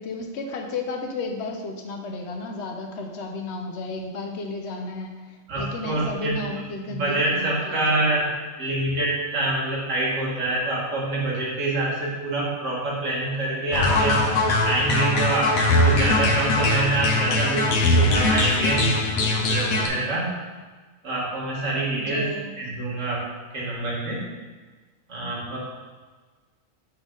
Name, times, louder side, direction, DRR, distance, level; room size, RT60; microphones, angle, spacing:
voice 1, 0.0-5.2 5.6-8.1 21.9-22.5, left 3 dB, 60° left, 3 dB, 0.9 m, -33 dB
voice 2, 5.5-6.5 6.8-8.3 8.6-14.2 14.6-20.3 21.0-22.2 22.6-23.2 23.5-24.2 25.1-25.6, right 2 dB, 60° right, -5 dB, 1.8 m, -26 dB
sound 1, 13.7-19.9, left 2 dB, 80° left, 1.2 m, -21 dB
5.7 x 4.5 x 3.8 m, 1.4 s
omnidirectional pair, 1.5 m